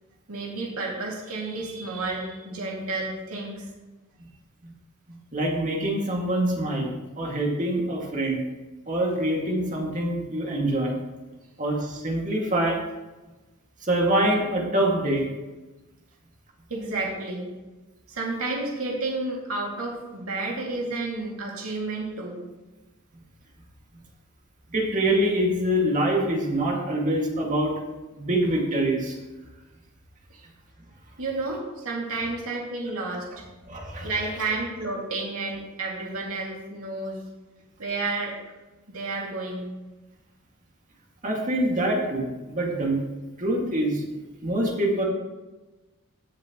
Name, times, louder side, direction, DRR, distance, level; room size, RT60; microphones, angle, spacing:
voice 1, 0.3-3.7 16.7-17.5 18.1-22.4 30.3-30.5 31.2-33.4 34.0-37.2 37.8-38.3 38.9-39.7, right 3 dB, 70° right, -2 dB, 2.5 m, -31 dB
voice 2, 5.3-6.9 7.2-8.4 8.9-11.0 11.6-12.8 13.8-15.2 24.7-27.7 28.1-29.2 33.7-34.1 41.2-43.0 43.4-44.0 44.4-45.0, right 1 dB, 35° right, -1 dB, 2.2 m, -25 dB
16.5 x 7.6 x 3.1 m, 1.1 s
head